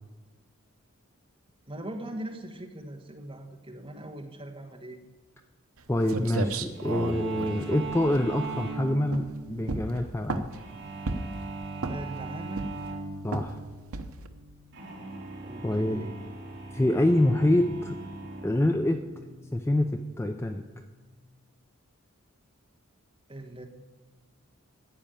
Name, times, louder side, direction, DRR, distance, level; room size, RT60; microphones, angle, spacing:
voice 1, 1.7-5.0 11.9-12.7 15.4-16.2 23.3-23.7, right 1 dB, 25° right, 3 dB, 1.2 m, -40 dB
sound 1, 5.8-5.9 6.1-8.7 9.1-9.4 9.7-10.6 11.1-11.4 11.8-12.2 12.6-12.9 13.3-13.6 13.9-14.3, right 3 dB, 75° right, 0.8 m, -33 dB
voice 2, 5.9-10.5 13.2-13.6 15.6-16.0 16.7-18.0 18.4-19.0 19.5-20.6, left 1 dB, 10° left, 6 dB, 0.4 m, -26 dB
sound 2, 6.7-21.2, right 3 dB, 50° right, 2.5 m, -41 dB
14.0 x 5.0 x 9.1 m, 1.3 s
head